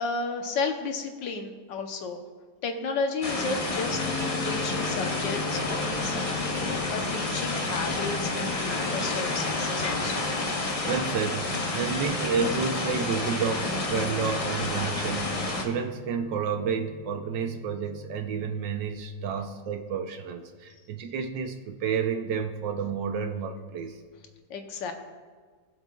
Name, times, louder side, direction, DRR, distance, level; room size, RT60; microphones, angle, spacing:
voice 1, 0.0-2.2 2.6-4.0 4.4-6.2 6.6-10.3 24.5-24.9, left 4 dB, 75° left, 5 dB, 1.6 m, -33 dB
sound 1, 3.2-15.6, left 2 dB, 30° left, 0.7 m, -30 dB
sound 2, 3.9-18.5, left 5 dB, 60° left, 1.1 m, -40 dB
voice 2, 10.8-24.0, right 6 dB, 75° right, 6 dB, 1.4 m, -30 dB
20.5 x 7.1 x 2.3 m, 1.5 s
omnidirectional pair, 2.0 m